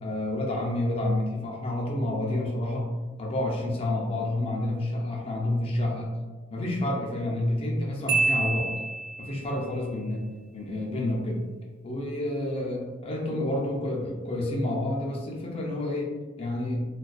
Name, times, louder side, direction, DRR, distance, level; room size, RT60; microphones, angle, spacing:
voice 1, 0.0-2.9 3.2-6.1 6.5-8.7 9.2-10.2 10.5-11.4 11.8-16.1 16.4-16.8, left 1 dB, 25° left, -1 dB, 0.4 m, -29 dB
Marimba xylophone, 8.1-9.5, right 3 dB, 50° right, 0.4 m, -27 dB
2.4 x 2.2 x 2.3 m, 1.3 s
head